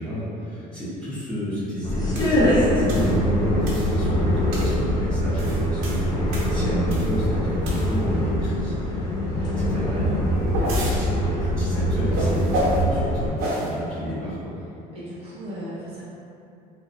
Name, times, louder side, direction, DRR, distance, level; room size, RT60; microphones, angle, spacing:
voice 1, 0.0-10.4 10.7-14.5, equal, 5° left, -12 dB, 0.8 m, -31 dB
sound 1, 1.8-13.3, equal, 25° left, 0.4 m, -23 dB
sound 2, 2.1-2.4 2.9-3.1 3.6-4.0 4.5-4.8 5.2-7.2 7.6-8.1 10.1-11.0 12.1-12.8 13.4-13.7, equal, 70° right, 0.7 m, -29 dB
voice 2, 9.3-10.2 14.9-16.0, equal, 35° right, -9 dB, 0.7 m, -36 dB
2.9 x 2.3 x 2.6 m, 2.6 s
cardioid pair, 145°, 17 cm